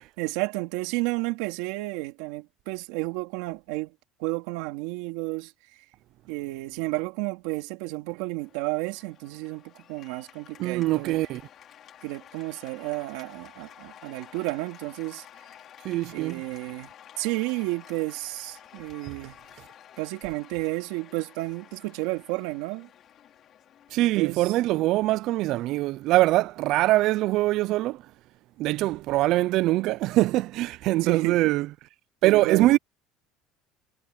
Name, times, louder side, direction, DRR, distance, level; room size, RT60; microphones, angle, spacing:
voice 1, 0.0-3.9 4.2-5.5 6.3-11.2 12.0-15.2 16.1-16.9 17.2-19.3 20.0-22.9 24.0-24.6 31.0-31.5 32.2-32.8, right 22 dB, 85° right, 3.6 m, -32 dB
Cheering / Applause, 8.4-27.7, left 10 dB, 35° left, 4.9 m, -52 dB
voice 2, 10.6-11.4 15.8-16.4 19.1-19.2 23.9-28.0 28.6-31.7 32.2-32.8, right 17 dB, 50° right, 0.4 m, -23 dB
cardioid pair, 170°, 0 cm